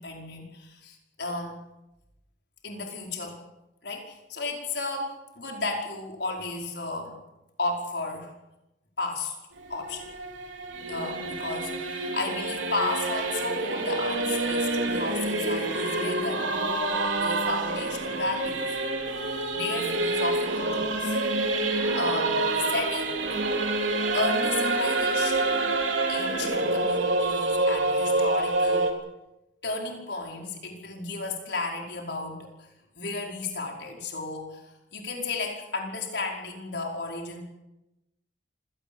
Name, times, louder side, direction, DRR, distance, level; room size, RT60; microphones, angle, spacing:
voice 1, 0.0-1.6 2.6-3.4 3.8-7.2 7.6-8.3 9.0-9.4 9.7-10.1 10.9-16.5 17.1-18.8 19.5-21.2 21.9-23.4 24.1-25.8 26.1-28.9 29.6-32.7 32.9-34.6 34.9-37.4, left 3 dB, 65° left, 1 dB, 5.1 m, -33 dB
Singing / Musical instrument, 9.5-28.9, right 2 dB, 85° right, 3.4 m, -27 dB
26.5 x 17.5 x 7.2 m, 0.94 s
head